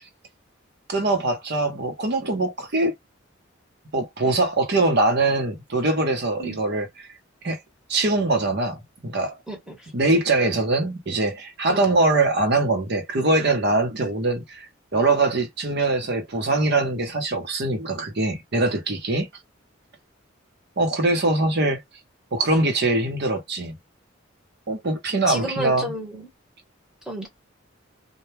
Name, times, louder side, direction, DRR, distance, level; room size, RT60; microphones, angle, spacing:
voice 1, 0.9-2.9 3.9-7.1 7.4-7.6 7.9-9.4 9.9-14.7 14.9-19.3 20.8-21.8 22.3-23.7 24.7-25.9, right 2 dB, 55° right, 0.8 m, -22 dB
voice 2, 25.3-26.3 27.1-27.3, right 1 dB, 5° right, 0.9 m, -31 dB
2.2 x 2.2 x 3.1 m
head